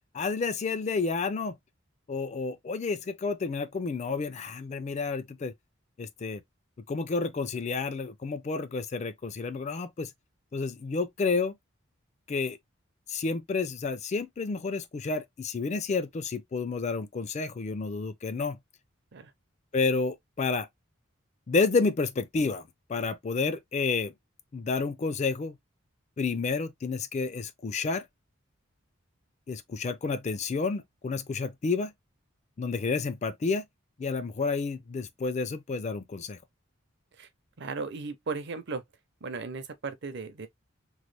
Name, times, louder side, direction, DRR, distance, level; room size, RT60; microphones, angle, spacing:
voice 1, 0.1-1.6 2.1-5.5 6.0-6.4 6.9-10.1 10.5-11.5 12.3-12.6 13.1-18.6 19.7-20.7 21.5-22.6 22.9-24.1 24.5-25.6 26.2-28.1 29.5-31.9 32.6-33.7 34.0-36.4, left 4 dB, 35° left, 0.4 m, -30 dB
voice 2, 37.6-38.8 39.2-40.5, right 4 dB, 55° right, 0.6 m, -36 dB
3.0 x 2.1 x 3.2 m
head